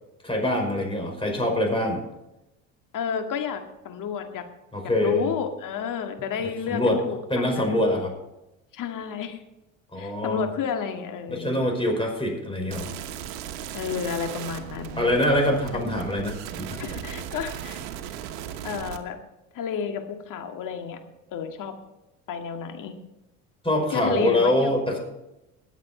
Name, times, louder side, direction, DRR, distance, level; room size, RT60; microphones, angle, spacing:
voice 1, 0.2-2.1 4.7-5.3 6.7-7.0 7.3-8.1 9.9-10.5 11.3-12.9 15.0-17.0 23.6-25.0, left 1 dB, 15° left, 2 dB, 5.3 m, -24 dB
voice 2, 2.9-4.5 5.0-7.8 8.7-9.4 10.0-11.6 13.7-15.1 16.8-17.8 18.6-19.2 19.5-21.0 21.3-21.7 22.3-23.0 23.9-24.8, left 7 dB, 55° left, 5 dB, 1.9 m, -31 dB
sound 1, 12.7-19.0, right 10 dB, 75° right, 1.2 m, -37 dB
20.5 x 7.5 x 4.4 m, 0.94 s
hypercardioid pair, 70°, 39 cm